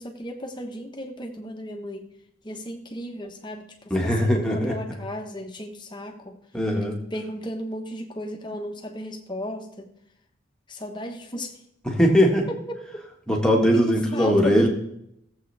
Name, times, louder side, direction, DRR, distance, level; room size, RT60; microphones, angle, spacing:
voice 1, 0.0-2.1 2.4-6.4 7.1-9.9 10.7-11.5 12.7-12.8 13.9-14.7, equal, 20° left, 3 dB, 1.2 m, -35 dB
voice 2, 3.9-4.8 6.5-7.0 11.8-12.5 13.3-14.7, equal, 5° left, -1 dB, 1.7 m, -20 dB
17.5 x 7.7 x 3.4 m, 0.77 s
head